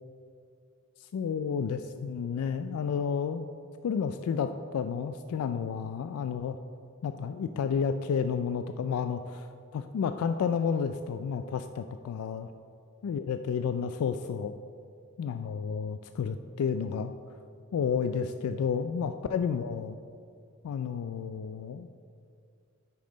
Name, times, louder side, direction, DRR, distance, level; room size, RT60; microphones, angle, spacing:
voice 1, 1.1-3.5 3.8-6.6 7.0-9.5 9.7-12.5 13.0-14.5 15.2-17.1 17.7-20.0 20.6-21.9, left 6 dB, 85° left, 9 dB, 0.3 m, -31 dB
10.0 x 5.5 x 3.9 m, 2.3 s
head